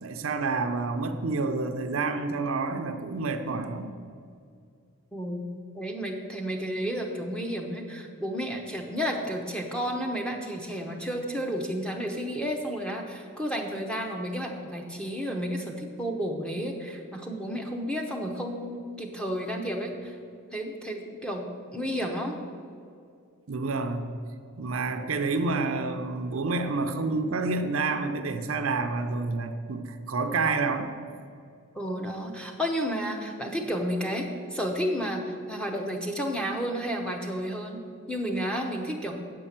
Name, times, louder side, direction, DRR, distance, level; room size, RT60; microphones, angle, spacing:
voice 1, 0.0-3.9 23.5-24.1 24.6-30.9, right 3 dB, 65° right, 7 dB, 0.6 m, -29 dB
voice 2, 5.1-5.5 5.7-20.2 20.5-22.3 31.7-39.1, equal, 5° left, 2 dB, 0.7 m, -32 dB
7.9 x 5.4 x 7.3 m, 2.3 s
head